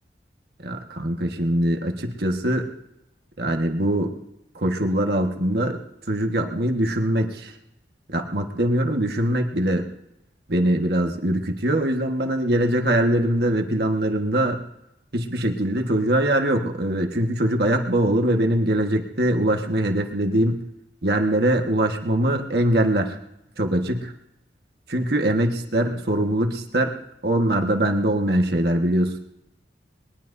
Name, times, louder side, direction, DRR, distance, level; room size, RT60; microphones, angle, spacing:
voice 1, 0.6-2.7 3.4-4.2 4.5-5.8 6.1-7.5 8.1-9.8 10.5-14.6 15.1-20.6 21.0-23.2 23.6-24.1 24.9-26.9 27.2-29.2, right 1 dB, 60° right, 3 dB, 1.5 m, -22 dB
21.5 x 21.0 x 2.7 m, 0.86 s
head